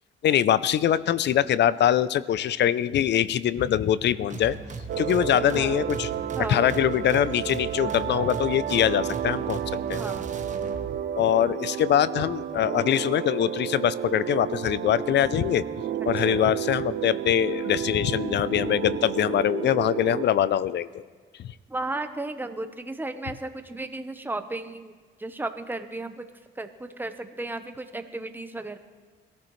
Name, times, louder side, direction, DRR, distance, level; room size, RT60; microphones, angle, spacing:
voice 1, 0.2-4.6 5.0-6.1 6.5-9.6 9.9-10.0 11.2-15.6 16.0-21.0 21.4-21.5, left 10 dB, 60° left, 17 dB, 0.5 m, -23 dB
sound 1, 4.3-11.0, right 4 dB, 40° right, 1.3 m, -38 dB
sound 2, 4.9-20.2, right 10 dB, 55° right, 0.6 m, -31 dB
voice 2, 6.4-6.7 10.0-10.3 16.0-16.4 21.7-24.9 25.2-26.2 26.6-28.8, right 2 dB, 10° right, 8 dB, 1.0 m, -34 dB
21.5 x 13.5 x 3.2 m, 1.5 s
cardioid pair, 90°, 20 cm